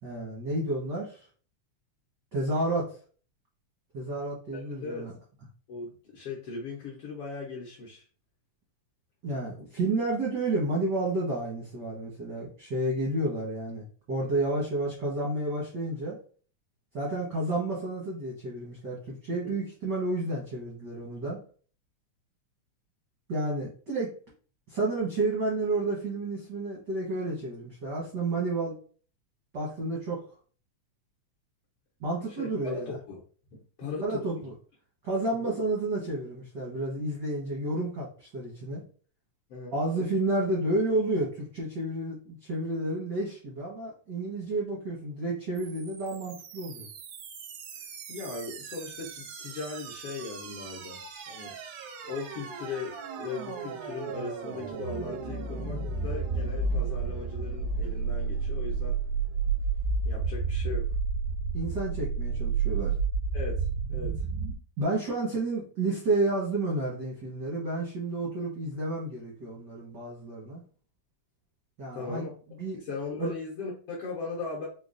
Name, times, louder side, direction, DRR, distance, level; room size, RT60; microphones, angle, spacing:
voice 1, 0.0-1.2 2.3-3.0 3.9-5.1 9.2-16.2 16.9-21.4 23.3-24.1 24.7-28.7 29.5-30.2 32.0-33.0 34.0-34.5 35.0-38.8 39.7-46.9 61.5-63.0 64.8-70.6 71.8-72.3 72.6-72.8 73.2-73.3, right 2 dB, 75° right, -5 dB, 1.0 m, -31 dB
voice 2, 4.5-5.1 5.7-8.0 19.4-19.5 32.3-33.2 33.5-34.5 39.5-39.7 48.1-51.0 51.3-51.5 52.0-59.0 60.0-60.9 63.3-64.2 71.9-72.3 72.7-74.7, left 4 dB, 70° left, -3 dB, 1.4 m, -38 dB
sound 1, 45.6-64.6, right 4 dB, 90° right, 2.2 m, -32 dB
5.2 x 2.2 x 2.5 m, 0.41 s
omnidirectional pair, 3.4 m